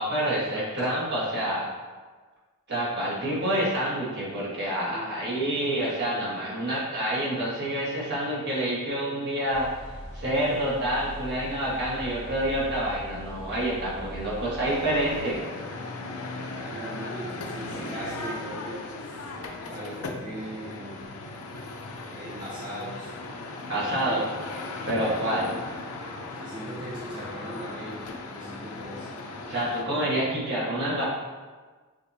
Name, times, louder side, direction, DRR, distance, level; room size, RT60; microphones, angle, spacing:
voice 1, 0.0-1.7 2.7-9.7 10.1-15.4 23.7-24.2 24.8-25.5 29.5-31.0, right 1 dB, 55° right, -6 dB, 1.2 m, -27 dB
voice 2, 4.7-5.2 16.5-19.2 19.7-21.1 22.1-23.1 23.7-24.3 26.4-28.0 28.3-29.2, right 1 dB, 20° right, -8 dB, 0.9 m, -39 dB
sound 1, 9.5-15.4, equal, 65° left, 1.1 m, -41 dB
sound 2, 14.6-29.8, left 2 dB, 80° left, 0.5 m, -37 dB
6.3 x 2.7 x 2.7 m, 1.4 s
head